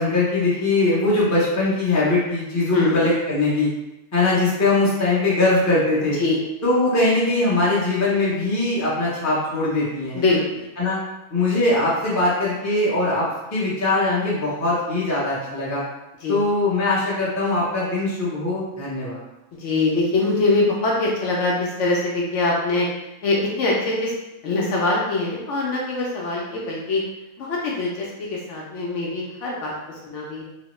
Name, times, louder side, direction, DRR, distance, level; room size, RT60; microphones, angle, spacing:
voice 1, 0.0-3.7 4.1-6.2 6.6-10.2 10.8-11.0 11.3-15.8 16.3-19.2, left 2 dB, 15° left, -8 dB, 0.6 m, -21 dB
voice 2, 2.6-3.0 6.0-6.4 10.1-10.7 16.2-16.4 19.5-22.9 23.2-24.1 24.4-27.0 27.4-30.4, left 2 dB, 70° left, -3 dB, 0.9 m, -23 dB
3.0 x 2.0 x 3.0 m, 0.95 s
omnidirectional pair, 1.4 m